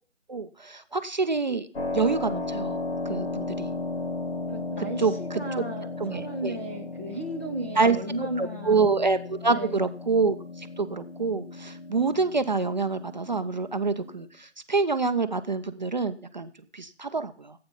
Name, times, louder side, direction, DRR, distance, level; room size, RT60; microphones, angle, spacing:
voice 1, 0.3-1.7 1.9-2.8 3.1-3.7 5.0-5.4 6.0-6.5 7.8-8.0 8.4-17.5, right 4 dB, 40° right, 10 dB, 0.6 m, -26 dB
Keyboard (musical), 1.7-14.3, left 3 dB, 50° left, 1.8 m, -35 dB
voice 2, 4.5-8.8 9.5-9.8, right 1 dB, 10° left, 0 dB, 0.7 m, -35 dB
16.0 x 8.6 x 3.8 m, 0.43 s
figure-of-eight pair, 160°, 37 cm